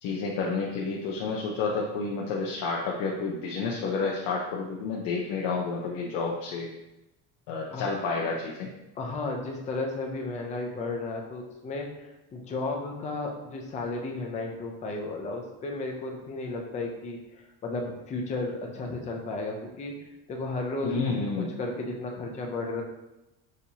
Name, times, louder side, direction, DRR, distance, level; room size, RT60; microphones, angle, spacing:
voice 1, 0.0-6.7 7.5-8.7 20.8-21.5, left 4 dB, 75° left, -3 dB, 0.7 m, -30 dB
voice 2, 9.0-20.9 21.4-22.8, left 2 dB, 20° left, 1 dB, 0.4 m, -34 dB
6.4 x 2.7 x 2.8 m, 0.94 s
cardioid pair, 175°, 36 cm